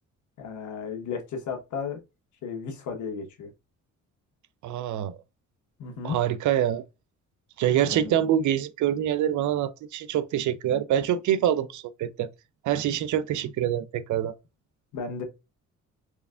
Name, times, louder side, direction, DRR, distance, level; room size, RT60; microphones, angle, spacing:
voice 1, 0.4-2.0 2.4-3.5 5.8-6.2 7.9-8.1 14.9-15.2, left 5 dB, 70° left, 1.4 m, -34 dB
voice 2, 4.6-5.2 6.0-6.8 7.6-12.3 12.6-14.3, right 10 dB, 75° right, 0.5 m, -25 dB
4.6 x 3.3 x 2.4 m
cardioid pair, 90°, 30 cm